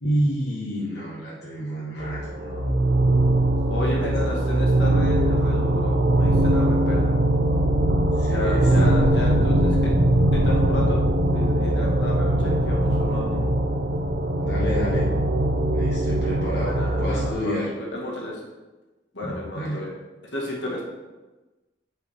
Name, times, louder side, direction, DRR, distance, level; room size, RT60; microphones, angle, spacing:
voice 1, 0.0-2.3 3.9-4.2 8.1-9.3 14.4-15.1 15.7-17.7 19.2-19.8, equal, 65° left, -7 dB, 1.3 m, -29 dB
sound 1, 2.0-17.3, right 1 dB, 65° right, 0.8 m, -21 dB
voice 2, 2.4-2.8 3.7-7.1 8.3-9.8 10.3-11.0 11.3-13.5 16.5-17.6 17.9-18.4 19.1-19.9 20.3-20.8, left 1 dB, 85° left, -3 dB, 1.7 m, -32 dB
8.2 x 4.8 x 3.5 m, 1.1 s
head